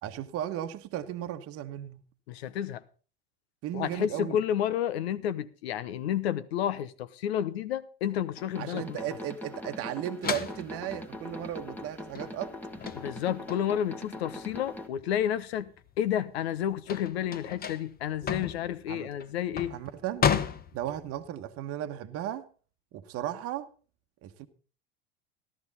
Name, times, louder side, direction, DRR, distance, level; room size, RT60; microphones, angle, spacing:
voice 1, 0.0-2.0 3.6-4.4 8.6-12.5 18.9-19.1 19.7-20.3 20.7-22.5 22.9-23.7 24.2-24.5, right 11 dB, 45° right, 1.1 m, -35 dB
voice 2, 2.3-2.8 3.7-9.0 12.9-15.7 16.0-19.7, left 10 dB, 70° left, 1.0 m, -31 dB
sound 1, 8.4-14.9, left 1 dB, 5° left, 1.5 m, -42 dB
sound 2, 10.2-15.3 15.7-21.3, left 7 dB, 30° left, 1.0 m, -33 dB
13.5 x 12.5 x 4.1 m
hypercardioid pair, 80°, 32 cm